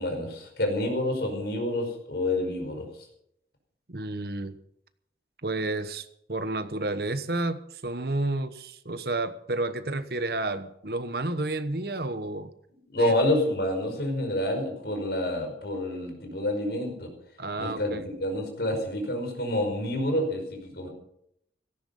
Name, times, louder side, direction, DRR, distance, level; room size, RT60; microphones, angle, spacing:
voice 1, 0.0-2.9 12.9-17.1 17.6-20.9, left 1 dB, 60° left, 4 dB, 5.3 m, -28 dB
voice 2, 3.9-4.5 5.4-12.5 13.0-13.1 17.4-18.0, right 2 dB, 55° right, 12 dB, 1.1 m, -31 dB
17.0 x 14.5 x 5.5 m, 0.74 s
head